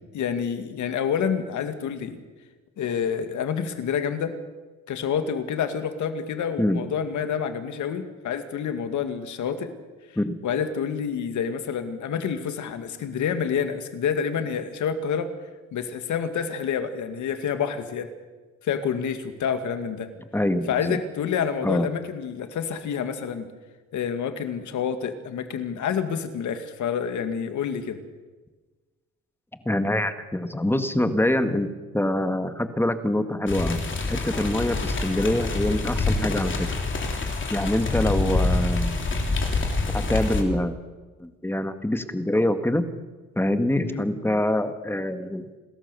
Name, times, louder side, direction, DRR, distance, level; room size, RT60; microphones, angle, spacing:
voice 1, 0.1-2.2 2.8-4.4 4.9-9.7 10.4-15.3 15.7-18.1 18.6-20.1 20.7-23.5 23.9-28.0 38.1-38.3 43.8-44.0, left 7 dB, 75° left, 9 dB, 2.1 m, -28 dB
voice 2, 20.3-21.0 21.6-21.9 29.7-33.8 34.1-36.7 37.5-39.0 39.9-40.8 41.2-42.9 43.4-45.5, left 1 dB, 5° left, 9 dB, 1.8 m, -25 dB
sound 1, 33.5-40.4, left 3 dB, 40° left, 3.4 m, -26 dB
29.0 x 13.5 x 6.9 m, 1.3 s
cardioid pair, 90°, 30 cm